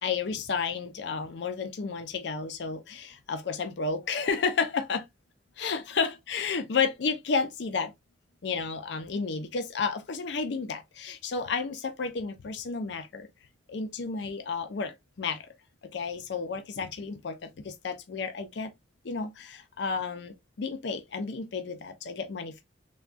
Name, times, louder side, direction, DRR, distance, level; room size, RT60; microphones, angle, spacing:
voice 1, 0.0-5.1 5.6-7.9 8.4-13.3 13.7-15.5 15.9-18.7 19.0-22.6, left 5 dB, 65° left, 0.5 m, -32 dB
3.4 x 2.2 x 2.4 m
head